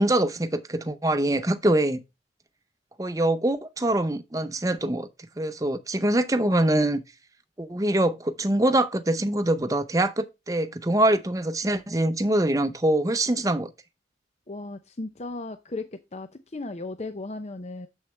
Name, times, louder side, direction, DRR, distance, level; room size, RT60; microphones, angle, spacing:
voice 1, 0.0-2.0 3.0-5.1 5.4-7.0 7.6-13.7, right 1 dB, 20° right, 0.7 m, -24 dB
voice 2, 14.5-17.9, left 2 dB, 35° left, 0.5 m, -36 dB
7.3 x 6.3 x 3.2 m
head